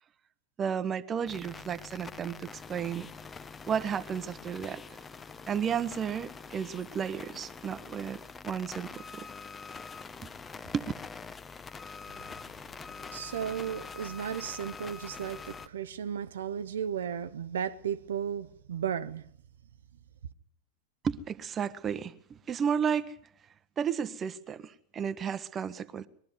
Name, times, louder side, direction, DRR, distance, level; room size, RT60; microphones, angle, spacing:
voice 1, 0.6-3.1 3.7-4.8 5.5-8.2 8.4-9.3 10.2-10.3 10.7-10.8 21.0-23.2 23.8-26.1, right 7 dB, 25° right, 1.1 m, -33 dB
sound 1, 1.3-15.7, left 5 dB, 15° left, 0.9 m, -45 dB
voice 2, 13.1-19.2, right 8 dB, 65° right, 0.8 m, -34 dB
22.0 x 13.0 x 9.7 m
figure-of-eight pair, 90°, 0 cm